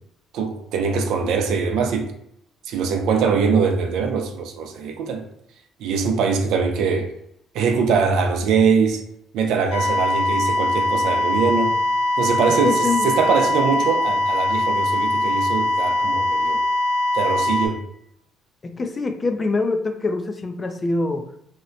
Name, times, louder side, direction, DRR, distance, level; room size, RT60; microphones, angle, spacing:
voice 1, 0.3-2.1 2.7-5.2 5.8-7.1 7.5-9.0 9.3-11.8 12.2-16.6 17.1-17.8, right 5 dB, 75° right, 0.5 m, -22 dB
sound 1, 9.7-17.7, left 1 dB, 65° left, 1.0 m, -21 dB
voice 2, 12.6-13.1 18.6-21.3, left 3 dB, 25° left, 0.4 m, -24 dB
2.7 x 2.1 x 2.6 m
cardioid pair, 110°, 0 cm